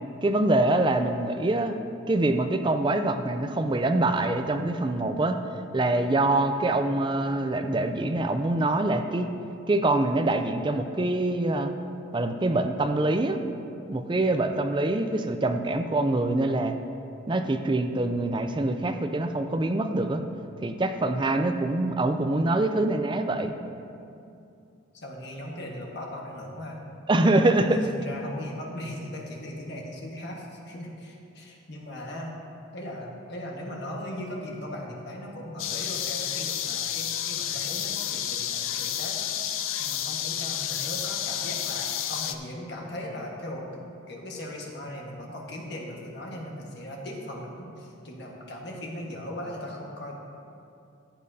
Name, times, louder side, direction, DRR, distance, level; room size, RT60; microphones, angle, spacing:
voice 1, 0.2-1.8 2.1-5.4 5.7-9.3 9.7-11.7 12.1-13.4 13.9-16.8 17.3-20.2 20.6-23.5 27.1-27.8, right 2 dB, 20° right, 7 dB, 0.4 m, -25 dB
voice 2, 24.9-26.8 27.2-32.3 32.7-39.4 39.8-50.1, left 1 dB, 50° left, -1 dB, 1.4 m, -38 dB
sound 1, 35.6-42.4, left 10 dB, 70° left, 0.5 m, -30 dB
14.5 x 8.5 x 2.7 m, 2.6 s
head